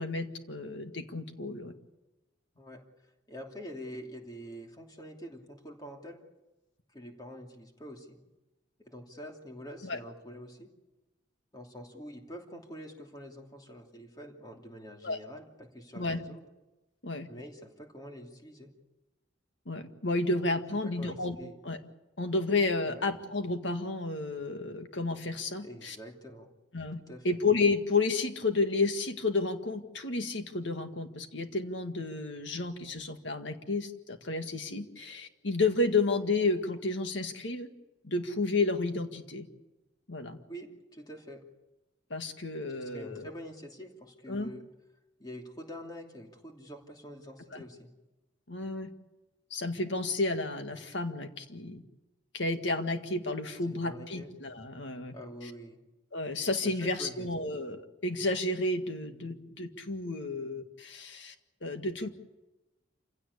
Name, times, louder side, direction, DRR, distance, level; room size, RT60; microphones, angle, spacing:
voice 1, 0.0-1.7 9.8-10.0 15.0-15.2 15.9-16.2 17.0-17.3 19.7-21.4 21.6-21.8 22.2-26.0 26.7-37.7 38.0-39.5 40.1-40.4 42.1-43.3 44.3-44.5 47.5-47.6 48.5-48.9 49.5-51.8 52.3-55.1 55.4-55.5 56.1-61.3 61.6-62.1, left 3 dB, 75° left, 7 dB, 1.9 m, -31 dB
voice 2, 3.3-6.2 6.9-8.2 8.8-10.7 11.5-16.4 17.3-18.7 20.8-21.5 22.8-23.0 25.6-26.5 27.1-27.4 40.5-41.4 42.7-44.6 45.2-47.9 53.6-54.3 55.1-55.8 56.6-57.3, equal, 20° left, 1 dB, 2.9 m, -46 dB
27.5 x 16.5 x 8.4 m, 1.1 s
head